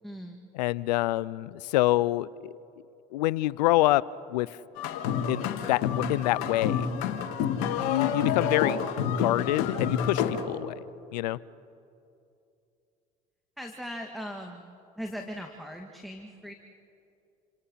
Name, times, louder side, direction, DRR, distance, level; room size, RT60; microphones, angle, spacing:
voice 1, 0.0-0.5 13.6-16.5, equal, ahead, 3 dB, 2.4 m, -39 dB
voice 2, 0.5-2.5 3.1-4.0 4.3-4.5 5.3-6.9 7.8-10.8 11.1-11.4, left 17 dB, 90° left, 21 dB, 0.5 m, -26 dB
sound 1, 4.8-10.4, left 7 dB, 75° left, 2.4 m, -29 dB
29.0 x 26.5 x 5.8 m, 2.6 s
hypercardioid pair, 70°, 21 cm